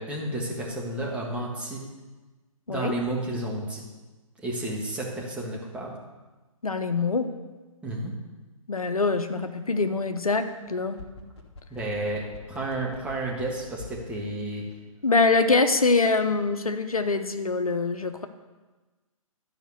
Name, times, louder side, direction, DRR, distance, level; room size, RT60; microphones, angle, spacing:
voice 1, 0.0-1.8 2.7-3.8 4.4-5.9 7.8-8.1 11.7-14.6, right 1 dB, 5° right, -4 dB, 1.5 m, -31 dB
voice 2, 6.6-7.3 8.7-11.0 15.0-18.3, left 3 dB, 90° left, 8 dB, 0.8 m, -24 dB
sound 1, 10.7-14.1 14.4-14.5, left 3 dB, 50° left, 1.5 m, -45 dB
12.0 x 5.2 x 6.4 m, 1.2 s
figure-of-eight pair, 135°, 18 cm